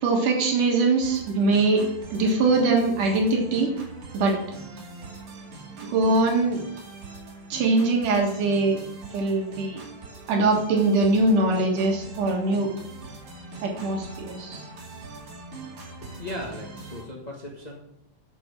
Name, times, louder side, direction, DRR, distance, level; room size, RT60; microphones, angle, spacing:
voice 1, 0.0-1.8 2.1-3.7 4.1-4.4 5.9-6.6 7.5-8.8 9.1-9.8 10.3-12.7 13.6-14.6, right 3 dB, 80° right, 1 dB, 3.2 m, -22 dB
sound 1, 1.0-17.0, right 3 dB, 65° right, 3.6 m, -42 dB
voice 2, 16.0-17.7, left 1 dB, 55° left, -1 dB, 0.4 m, -37 dB
8.9 x 6.6 x 7.4 m, 0.80 s
omnidirectional pair, 3.5 m